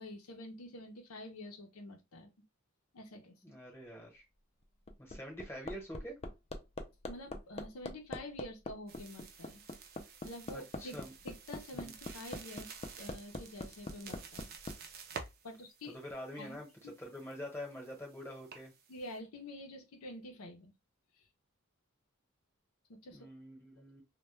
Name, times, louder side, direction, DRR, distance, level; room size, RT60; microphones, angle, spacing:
voice 1, 0.0-2.3 2.9-3.6 7.1-9.6 10.2-11.0 11.2-14.5 15.4-15.9 16.4-16.9 18.9-20.7 22.9-23.3, left 1 dB, 90° left, 0.6 m, -48 dB
voice 2, 3.4-4.2 5.0-6.2 10.5-11.1 11.7-11.9 15.9-16.7 17.0-18.7 23.1-24.0, equal, 10° left, 0.9 m, -46 dB
Hammer, 4.6-14.8 16.1-16.2, left 2 dB, 30° left, 0.3 m, -42 dB
sound 1, 8.9-19.2, right 6 dB, 45° right, 0.4 m, -52 dB
2.2 x 2.2 x 2.9 m
head